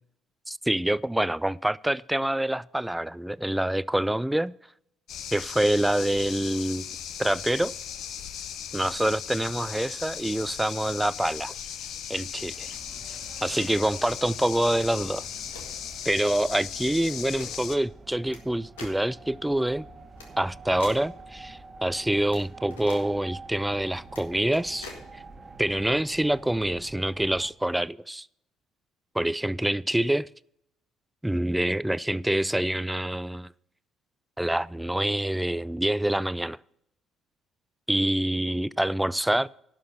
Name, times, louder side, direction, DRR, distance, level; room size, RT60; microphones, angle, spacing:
voice 1, 0.5-4.5 5.3-6.9 7.2-7.7 8.7-11.5 12.1-12.7 13.4-15.2 16.1-19.9 20.4-25.2 25.6-28.3 29.1-30.3 31.2-33.5 34.4-36.6 37.9-39.5, right 1 dB, 5° right, 0.3 m, -26 dB
sound 1, 5.1-17.8, left 9 dB, 65° left, 0.8 m, -38 dB
sound 2, 12.4-27.5, right 3 dB, 30° right, 1.1 m, -47 dB
sound 3, 15.3-15.8 16.9-17.5 18.3-18.4 18.8-19.0 20.2-20.3 20.8-21.1 22.3-22.4 22.7-23.0 24.1-24.2 24.5-25.0, left 3 dB, 85° left, 1.7 m, -43 dB
11.5 x 6.1 x 6.7 m
hypercardioid pair, 55°, 0 cm